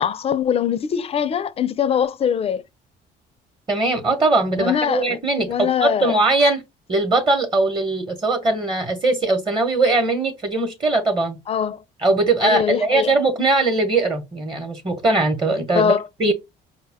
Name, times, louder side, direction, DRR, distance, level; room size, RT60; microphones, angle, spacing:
voice 1, 0.0-2.6 4.6-5.2 5.5-6.2 11.5-11.8 12.4-13.2 15.8-16.3, left 8 dB, 35° left, 0.4 m, -22 dB
voice 2, 3.7-6.6 6.9-11.4 12.0-15.9 16.2-16.3, right 2 dB, 30° right, 0.9 m, -20 dB
4.8 x 2.2 x 3.5 m
cardioid pair, 110°, 17 cm